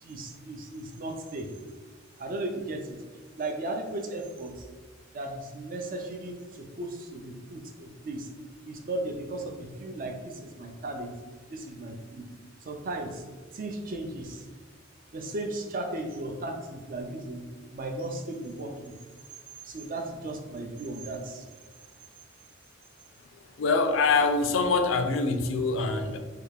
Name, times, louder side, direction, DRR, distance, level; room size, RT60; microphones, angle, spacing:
voice 1, 0.0-1.5 2.2-3.0 3.4-4.7 5.1-8.3 8.6-11.1 11.5-12.3 12.6-13.2 13.5-14.5 15.1-17.4 17.7-18.9 19.6-21.5, right 2 dB, 45° right, 4 dB, 0.5 m, -36 dB
voice 2, 23.6-26.2, left 4 dB, 80° left, 7 dB, 0.4 m, -24 dB
3.4 x 2.4 x 3.3 m, 1.4 s
head